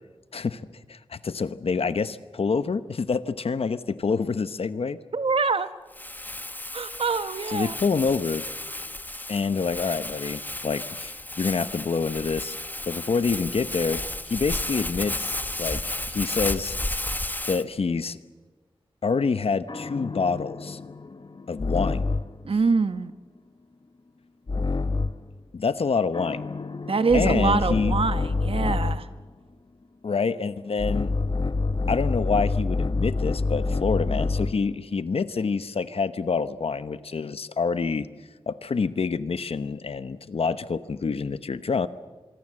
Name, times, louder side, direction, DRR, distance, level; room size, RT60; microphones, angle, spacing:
voice 1, 0.9-5.0 7.5-8.4 9.3-12.6 12.9-16.8 17.5-18.2 19.0-20.8 21.5-22.1 25.5-26.4 27.1-27.9 30.0-31.1 31.9-38.1 38.5-41.9, left 5 dB, 85° left, 13 dB, 1.0 m, -27 dB
voice 2, 5.1-5.7 6.7-7.8 22.4-23.1 26.9-29.1, right 4 dB, 75° right, 12 dB, 1.2 m, -24 dB
Crumpling crinkling, 5.9-17.6, left 1 dB, 20° left, 1.1 m, -33 dB
sound 1, 19.7-22.4 24.5-25.3 26.1-29.1 30.8-34.7, left 3 dB, 50° left, 1.1 m, -27 dB
25.5 x 23.5 x 7.7 m, 1.3 s
wide cardioid pair, 70°, 10 cm